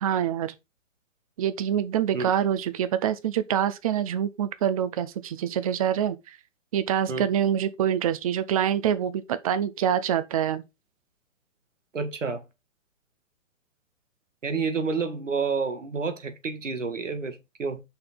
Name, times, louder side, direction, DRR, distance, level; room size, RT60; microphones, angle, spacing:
voice 1, 0.0-0.5 1.4-6.2 6.7-10.6, right 9 dB, 30° right, 0.6 m, -25 dB
voice 2, 11.9-12.4 14.4-17.8, right 4 dB, 70° right, 1.4 m, -29 dB
5.9 x 4.3 x 5.1 m
figure-of-eight pair, 120°, 39 cm